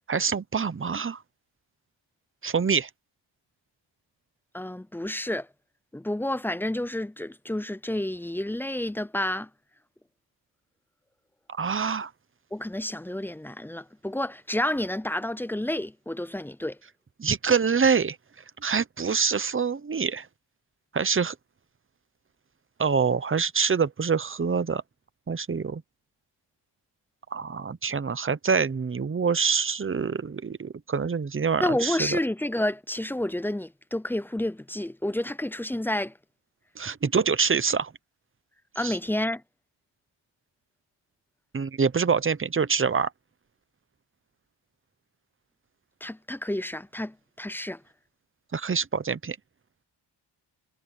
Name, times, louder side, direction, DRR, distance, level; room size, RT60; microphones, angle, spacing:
voice 1, 0.1-1.2 2.4-2.9 11.6-12.1 17.2-18.2 18.6-20.3 20.9-21.4 22.8-24.8 25.3-25.8 27.3-32.2 36.8-37.9 38.8-39.0 41.5-43.1 48.5-49.4, right 5 dB, 25° right, 0.7 m, -25 dB
voice 2, 4.5-5.5 5.9-9.5 12.5-16.8 31.6-36.1 38.8-39.4 46.0-47.8, left 1 dB, 5° left, 0.4 m, -30 dB
wide cardioid pair, 150°, 47 cm